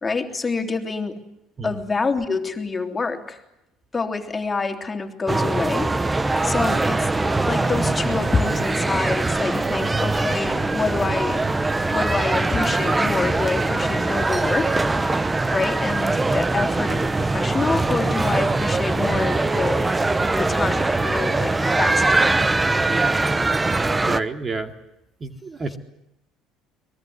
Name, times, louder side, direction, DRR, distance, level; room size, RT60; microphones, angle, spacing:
voice 1, 0.0-1.3 1.6-3.4 3.9-7.1 7.4-11.5 11.8-15.2 15.5-19.9 20.3-22.5, left 4 dB, 25° left, 5 dB, 3.3 m, -27 dB
sound 1, 5.3-24.2, right 2 dB, 15° right, 1.0 m, -22 dB
voice 2, 24.0-24.7 25.2-25.7, right 3 dB, 30° right, 7 dB, 2.6 m, -29 dB
23.5 x 21.5 x 9.6 m, 0.86 s
supercardioid pair, 85°, 0 cm